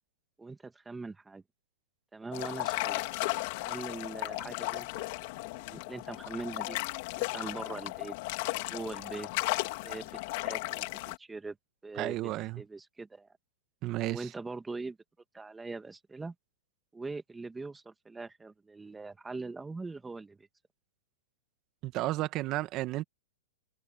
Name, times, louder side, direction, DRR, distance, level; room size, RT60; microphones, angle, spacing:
voice 1, 0.4-1.4 2.1-6.8 7.2-8.2 8.7-9.3 9.8-10.9 11.2-11.6 11.8-12.3 12.6-13.4 14.1-15.0 15.3-16.3 16.9-20.5, right 3 dB, 10° right, 1.9 m, -42 dB
sound 1, 2.3-11.2, left 22 dB, 45° left, 2.8 m, -35 dB
voice 2, 12.0-12.6 13.8-14.2 21.8-23.0, right 17 dB, 30° right, 1.3 m, -32 dB
hypercardioid pair, 150°, 0 cm